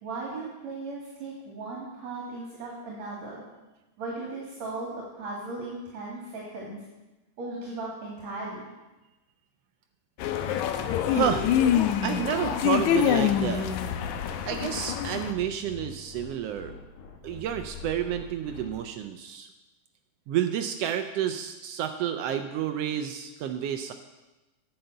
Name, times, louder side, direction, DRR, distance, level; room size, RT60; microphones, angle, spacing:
voice 1, 0.0-3.4 4.0-6.8 7.4-8.6, right 3 dB, 60° right, -4 dB, 3.3 m, -37 dB
sound 1, 10.2-15.3, left 9 dB, 80° left, 2.0 m, -26 dB
sound 2, 10.4-18.7, left 4 dB, 55° left, 1.7 m, -44 dB
voice 2, 11.1-11.5 12.0-13.7 14.4-16.8 17.2-19.5 20.3-23.9, right 10 dB, 85° right, 7 dB, 1.4 m, -30 dB
10.5 x 6.7 x 7.7 m, 1.1 s
omnidirectional pair, 3.5 m